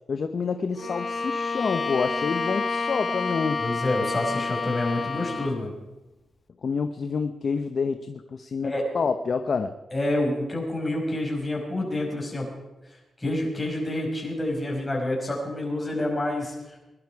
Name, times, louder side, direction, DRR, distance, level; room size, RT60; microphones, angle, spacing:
voice 1, 0.1-3.6 6.6-9.7, left 5 dB, 55° left, 8 dB, 0.8 m, -28 dB
Bowed string instrument, 0.8-5.6, left 4 dB, 40° left, 1.3 m, -29 dB
voice 2, 3.6-5.7 8.6-8.9 9.9-12.5 13.2-16.5, left 1 dB, 20° left, -1 dB, 6.0 m, -28 dB
21.5 x 11.5 x 4.8 m, 1.0 s
cardioid pair, 75°, 0 cm